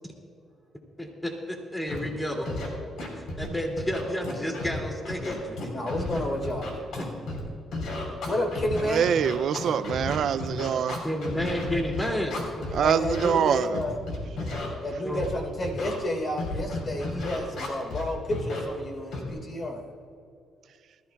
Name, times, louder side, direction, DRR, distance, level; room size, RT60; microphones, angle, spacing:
voice 1, 1.0-2.6 3.2-5.7 7.0-7.1 11.0-12.4 14.9-15.3, equal, 10° left, 1 dB, 2.5 m, -31 dB
Scratching (performance technique), 1.9-2.0 2.4-2.7 3.0-3.5 3.8-4.8 5.0-7.4 7.7-12.7 13.0-13.3 13.7-14.7 15.2-15.3 15.6-16.0 16.4-18.0 18.3-18.6 19.1-19.3, left 2 dB, 75° left, 3.7 m, -33 dB
voice 2, 5.7-6.8 8.3-9.1 12.8-14.0 14.8-19.8, left 1 dB, 45° left, 1 dB, 3.6 m, -30 dB
voice 3, 8.9-11.0 12.7-13.7, right 8 dB, 65° right, 12 dB, 0.3 m, -24 dB
21.0 x 14.0 x 2.3 m, 2.4 s
cardioid pair, 90°, 0 cm